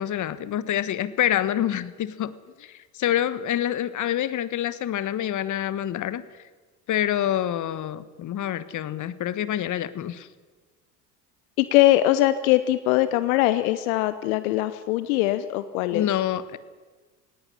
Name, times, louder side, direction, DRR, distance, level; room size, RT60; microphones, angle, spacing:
voice 1, 0.0-2.3 2.6-6.2 6.9-10.3 15.9-16.6, left 11 dB, 40° left, 15 dB, 1.3 m, -27 dB
voice 2, 11.6-16.1, left 15 dB, 65° left, 13 dB, 1.0 m, -21 dB
18.5 x 16.5 x 10.0 m, 1.4 s
figure-of-eight pair, 65°, 46 cm